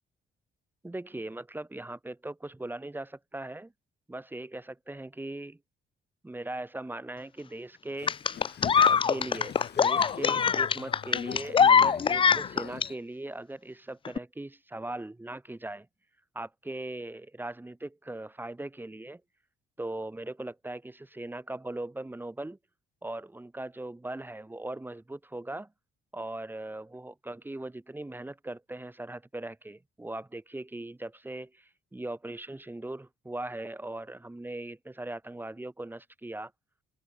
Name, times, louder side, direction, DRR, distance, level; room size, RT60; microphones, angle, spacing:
voice 1, 0.8-3.7 4.1-5.6 6.2-8.2 8.7-15.9 16.3-19.2 19.8-22.6 23.0-25.7 26.1-36.5, right 2 dB, 10° right, 0.8 m, -39 dB
Boat Water vehicle, 8.0-12.9, left 9 dB, 55° left, 2.5 m, -42 dB
sound 1, 8.1-12.9 14.1-14.2, left 6 dB, 25° left, 0.4 m, -22 dB
cardioid pair, 90°, 20 cm